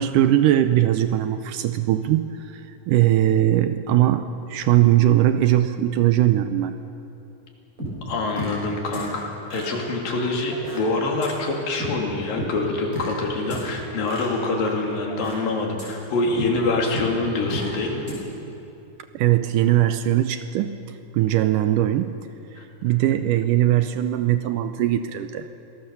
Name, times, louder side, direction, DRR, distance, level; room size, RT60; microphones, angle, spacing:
voice 1, 0.0-6.8 19.1-20.8 21.1-22.2 22.8-25.5, right 13 dB, 80° right, 10 dB, 2.0 m, -20 dB
sound 1, 7.8-8.7 8.9-9.1 9.5-10.8 11.2-11.3 11.8-11.9 12.4-13.1 13.5-13.6 14.1-15.3 15.8-15.9 16.4-16.5 16.9-17.7 18.1-18.2, right 1 dB, 20° right, 6.6 m, -34 dB
voice 2, 8.1-18.0 22.6-22.7, left 3 dB, 75° left, 1 dB, 4.4 m, -25 dB
27.0 x 18.0 x 7.0 m, 2.7 s
omnidirectional pair, 4.1 m